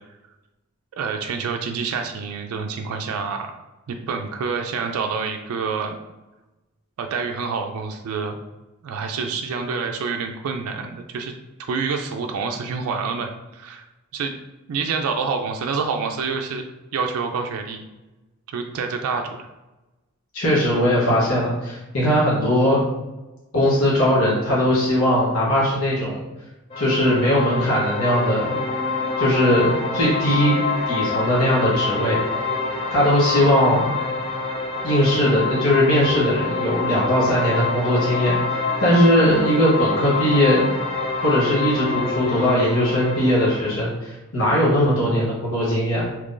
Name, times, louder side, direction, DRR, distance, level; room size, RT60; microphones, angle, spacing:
voice 1, 1.0-3.5 3.9-6.0 7.0-8.4 8.8-11.3 11.7-13.9 14.1-14.3 14.7-16.6 16.9-17.8 18.5-19.4, right 5 dB, 85° right, 4 dB, 0.3 m, -27 dB
voice 2, 20.3-22.8 23.5-26.2 26.8-28.6 29.2-30.6 30.9-32.2 32.9-33.9 34.8-40.7 41.2-46.1, equal, 75° left, -6 dB, 1.0 m, -19 dB
sound 1, 26.7-43.7, left 4 dB, 25° left, 0.4 m, -26 dB
2.9 x 2.5 x 3.6 m, 1.0 s
head